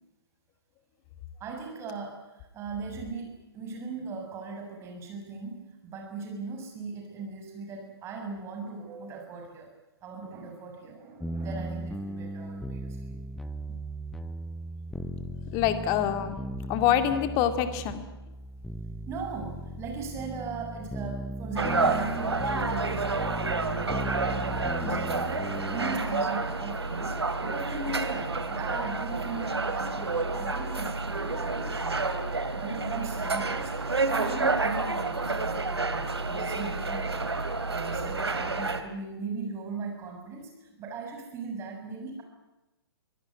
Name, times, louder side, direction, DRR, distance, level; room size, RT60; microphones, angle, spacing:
voice 1, 1.4-9.7 10.0-13.2 19.1-23.2 23.8-27.1 27.4-32.1 32.6-37.4 37.7-42.2, right 4 dB, 20° right, 2 dB, 7.0 m, -38 dB
sound 1, 11.2-26.0, right 1 dB, ahead, 0.9 m, -37 dB
voice 2, 15.5-16.4 16.7-18.0 24.8-25.2, left 10 dB, 30° left, 9 dB, 2.3 m, -26 dB
sound 2, 21.5-38.8, right 3 dB, 80° right, 2.7 m, -29 dB
25.0 x 18.5 x 9.7 m, 0.98 s
figure-of-eight pair, 125°, 13 cm